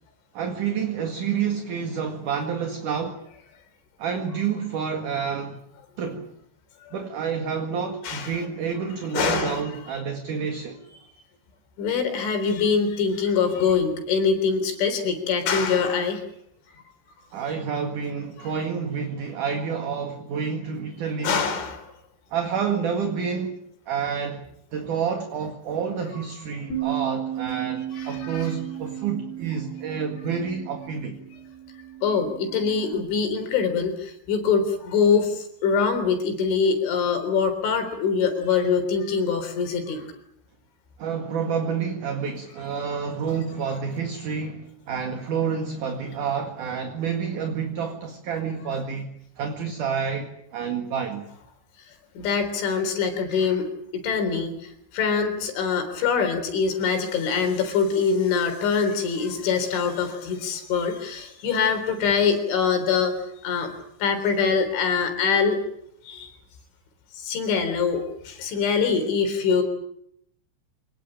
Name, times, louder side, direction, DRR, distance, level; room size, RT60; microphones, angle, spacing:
voice 1, 0.3-3.2 4.0-5.6 6.0-6.3 6.9-10.8 17.3-21.4 22.3-23.6 23.9-24.4 24.7-31.2 41.0-51.3, right 6 dB, 50° right, 3.0 m, -29 dB
voice 2, 8.0-8.4 9.1-9.7 11.8-16.2 21.2-21.9 27.9-28.5 32.0-40.1 51.9-63.2 63.4-63.7 64.0-65.6 66.0-66.4 67.2-69.6, left 5 dB, 85° left, 6.3 m, -24 dB
Bass guitar, 26.7-33.0, right 12 dB, 60° left, 4.1 m, -34 dB
27.0 x 19.0 x 9.0 m
omnidirectional pair, 5.3 m